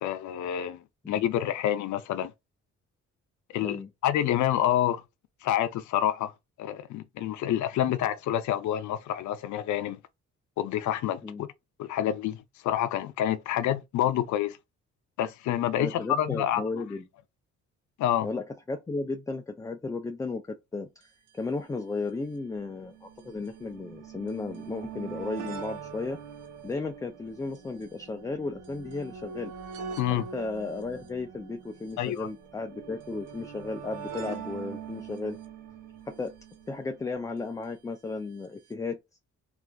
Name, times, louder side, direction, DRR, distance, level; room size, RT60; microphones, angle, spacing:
voice 1, 0.0-2.3 3.5-3.8 4.0-5.0 5.4-6.3 6.6-10.0 10.6-11.5 11.8-14.6 15.2-16.6 18.0-18.3 30.0-30.3 32.0-32.3, left 11 dB, 70° left, 0.5 m, -28 dB
voice 2, 15.8-17.1 18.2-21.1 21.3-26.2 26.6-29.5 30.1-35.4 36.1-36.3 36.7-39.0, left 3 dB, 10° left, 0.4 m, -34 dB
sound 1, 21.0-21.1 21.3-21.4 22.2-37.5 38.4-38.5 38.7-38.8, right 7 dB, 85° right, 0.9 m, -43 dB
3.3 x 2.5 x 2.3 m
cardioid pair, 90°, 30 cm